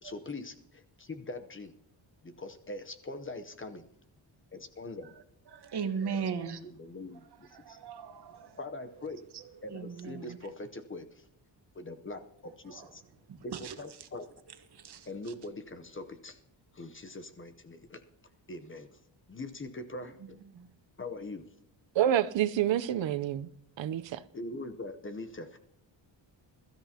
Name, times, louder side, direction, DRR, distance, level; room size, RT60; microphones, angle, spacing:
voice 1, 0.0-1.7 2.2-3.9 4.5-5.1 6.8-7.8 8.6-9.2 9.6-11.3 11.7-13.0 13.4-14.3 15.1-16.4 16.7-18.0 18.5-18.9 19.3-20.4 21.0-21.5 23.3-23.4 24.3-25.6, left 2 dB, 25° left, 0.7 m, -42 dB
voice 2, 5.1-6.6 7.4-8.6 9.3-9.4 9.7-10.4 12.7-12.9 13.3-14.1 14.5-15.3 20.5-20.7, right 6 dB, 60° right, 1.3 m, -39 dB
voice 3, 21.9-23.5 23.8-24.2, right 11 dB, 75° right, 0.7 m, -28 dB
22.0 x 13.0 x 2.8 m
wide cardioid pair, 155°, 45 cm